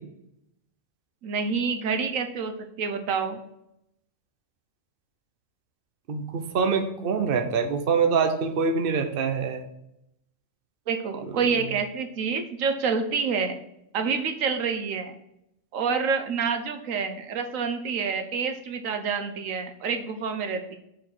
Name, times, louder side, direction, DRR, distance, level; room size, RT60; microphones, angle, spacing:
voice 1, 1.2-3.4 10.9-13.6 13.9-15.1 15.7-20.8, right 5 dB, 85° right, 7 dB, 1.2 m, -28 dB
voice 2, 6.1-9.6, right 5 dB, 50° right, 5 dB, 1.0 m, -25 dB
6.6 x 4.8 x 5.9 m, 0.80 s
omnidirectional pair, 1.3 m